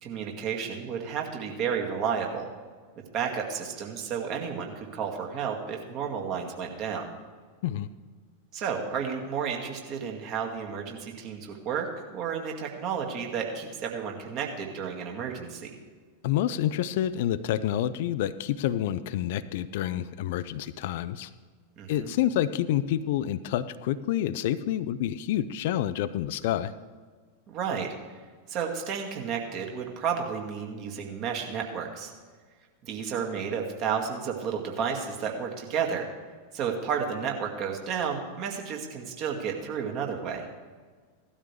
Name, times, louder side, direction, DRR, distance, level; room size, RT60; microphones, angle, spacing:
voice 1, 0.0-2.5 3.1-7.1 8.5-15.7 21.8-22.1 27.5-28.0 28.5-32.1 32.8-36.1 36.5-40.4, right 7 dB, 40° right, 1 dB, 2.1 m, -32 dB
voice 2, 16.2-21.3 21.9-26.7, left 11 dB, 50° left, 15 dB, 0.5 m, -28 dB
17.0 x 12.5 x 3.4 m, 1.5 s
figure-of-eight pair, 90°, 0 cm